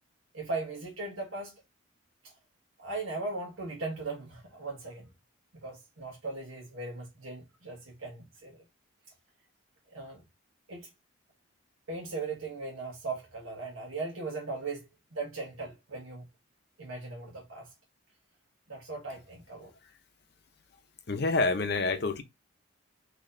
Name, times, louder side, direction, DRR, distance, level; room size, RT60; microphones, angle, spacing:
voice 1, 0.3-1.5 2.2-2.3 2.8-5.1 5.5-8.6 9.9-10.2 10.7-10.9 11.9-16.2 16.8-17.7 18.7-19.7, right 3 dB, 85° right, 1.1 m, -38 dB
voice 2, 21.1-22.2, left 3 dB, 55° left, 0.6 m, -27 dB
4.1 x 2.8 x 2.6 m
head